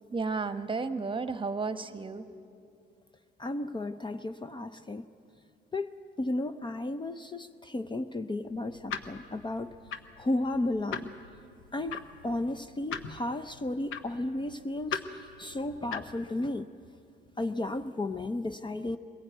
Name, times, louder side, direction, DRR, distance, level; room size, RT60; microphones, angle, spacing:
voice 1, 0.1-2.2, right 4 dB, 25° right, 11 dB, 1.1 m, -32 dB
voice 2, 3.4-5.1 5.7-5.9 6.2-9.8 10.2-11.1 11.7-15.0 15.4-16.7 17.4-19.0, left 2 dB, 25° left, 10 dB, 0.6 m, -33 dB
sound 1, 8.5-16.3, left 6 dB, 85° left, 1.0 m, -41 dB
22.0 x 16.0 x 9.2 m, 2.5 s
cardioid pair, 90°, 20 cm